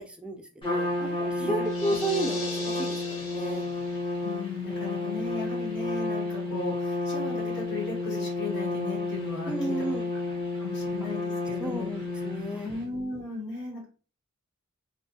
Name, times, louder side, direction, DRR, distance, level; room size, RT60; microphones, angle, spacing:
voice 1, 0.0-0.9 1.2-3.7 9.5-10.1 11.6-12.7, right 2 dB, 5° right, 4 dB, 0.3 m, -33 dB
Trumpet, 0.6-12.7, left 3 dB, 25° left, 0.8 m, -31 dB
voice 2, 1.0-1.7 4.2-9.7 10.5-11.9 12.3-13.8, left 3 dB, 55° left, -2 dB, 1.1 m, -36 dB
sound 1, 1.6-4.1, left 2 dB, 85° left, 1.5 m, -39 dB
2.6 x 2.2 x 2.6 m, 0.37 s
head